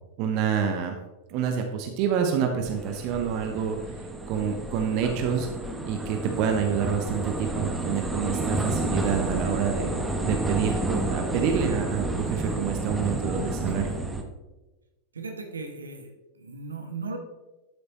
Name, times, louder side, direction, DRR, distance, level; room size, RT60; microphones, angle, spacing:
voice 1, 0.2-1.0 1.3-5.5 5.9-13.9, right 7 dB, 45° right, 4 dB, 0.9 m, -27 dB
sound 1, 2.6-14.2, right 2 dB, 10° right, 1.0 m, -30 dB
voice 2, 15.1-17.2, right 4 dB, 75° right, 4 dB, 1.2 m, -37 dB
11.5 x 6.5 x 3.0 m, 1.1 s
figure-of-eight pair, 90°, 0 cm